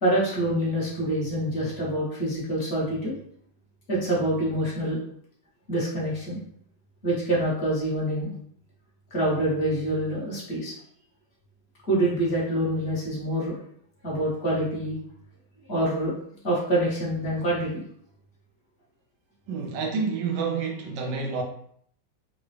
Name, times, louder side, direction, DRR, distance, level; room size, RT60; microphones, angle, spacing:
voice 1, 0.0-3.1 3.9-5.0 5.7-6.4 7.0-8.3 9.1-10.7 11.9-13.6 14.0-15.0 15.7-16.2 16.4-17.8, right 1 dB, 40° left, 1.1 m, -26 dB
voice 2, 19.5-21.4, right 5 dB, 75° right, 1.1 m, -28 dB
3.8 x 2.2 x 3.1 m
omnidirectional pair, 2.3 m